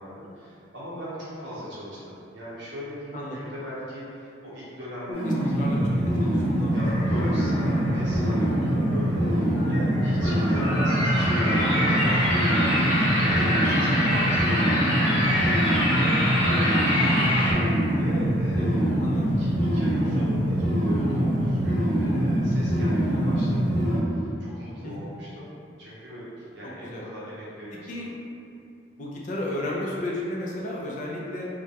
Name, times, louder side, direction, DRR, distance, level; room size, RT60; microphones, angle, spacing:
voice 1, 0.0-5.8 6.7-17.6 18.0-25.5 25.8-28.1, equal, 70° right, -8 dB, 0.7 m, -39 dB
sound 1, 5.1-24.0, equal, 65° left, 0.9 m, -24 dB
voice 2, 5.2-7.1 13.2-13.6 18.6-19.4 24.8-25.1 26.6-27.0 27.9-28.1 29.0-31.5, left 1 dB, 40° left, -3 dB, 0.3 m, -34 dB
sound 2, 6.8-17.5, left 1 dB, 85° left, 0.8 m, -27 dB
2.2 x 2.1 x 2.7 m, 2.4 s
head